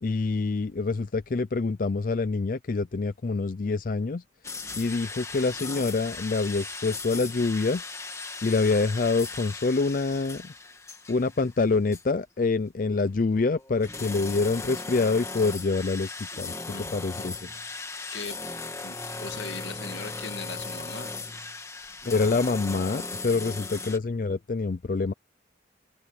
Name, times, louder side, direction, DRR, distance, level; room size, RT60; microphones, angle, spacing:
voice 1, 0.0-4.2 4.8-7.8 8.4-10.5 11.1-16.1 16.4-16.5 16.9-17.4 22.1-25.1, left 3 dB, 45° left, 0.4 m, -26 dB
sound 1, 4.4-11.6 11.9-12.0 13.0-24.0, left 3 dB, 15° left, 1.7 m, -37 dB
voice 2, 16.7-17.1 18.1-18.4 18.8-21.1 23.3-23.8, left 4 dB, 80° left, 2.1 m, -40 dB
head